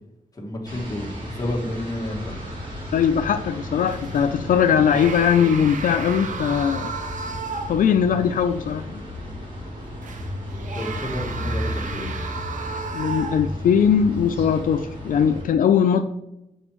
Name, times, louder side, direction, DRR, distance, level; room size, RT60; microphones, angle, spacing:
voice 1, 0.3-2.4 10.7-12.1, left 1 dB, 25° left, -1 dB, 1.2 m, -30 dB
sound 1, 0.6-15.4, left 1 dB, 35° right, 2.0 m, -34 dB
voice 2, 2.9-6.9 7.7-9.0 12.9-16.0, left 7 dB, 80° left, 8 dB, 0.4 m, -20 dB
sound 2, 3.9-4.3 4.8-8.0 8.4-8.5 10.0-13.7 14.4-14.6, right 4 dB, 65° right, 0.6 m, -34 dB
8.0 x 4.3 x 3.0 m, 0.90 s
wide cardioid pair, 150°, 14 cm